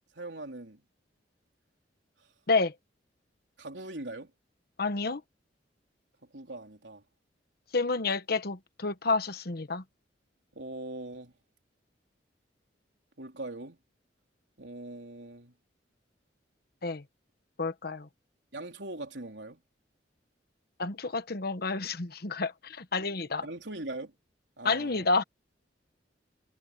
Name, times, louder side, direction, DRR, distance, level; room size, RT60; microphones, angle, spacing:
voice 1, 0.2-0.8 3.6-4.3 6.2-7.0 10.5-11.3 13.2-13.8 14.6-15.5 18.5-19.6 23.2-24.1 24.6-25.1, right 2 dB, 75° right, 3.9 m, -41 dB
voice 2, 4.8-5.2 7.7-9.8 16.8-17.0 17.6-18.1 20.8-23.5 24.6-25.2, left 3 dB, 60° left, 1.2 m, -29 dB
head